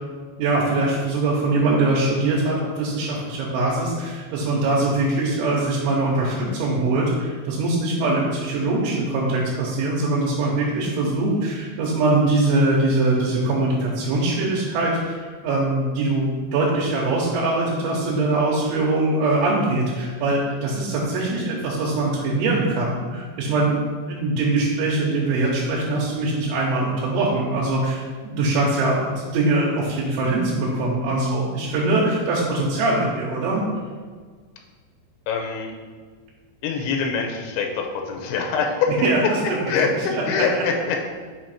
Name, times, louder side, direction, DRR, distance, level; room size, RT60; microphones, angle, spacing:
voice 1, 0.4-23.8 24.1-33.6 39.0-40.6, right 2 dB, 85° right, -5 dB, 3.2 m, -22 dB
voice 2, 35.3-35.7 36.6-39.1 39.7-41.1, left 5 dB, 85° left, 2 dB, 2.3 m, -24 dB
7.5 x 2.7 x 5.7 m, 1.5 s
omnidirectional pair, 5.5 m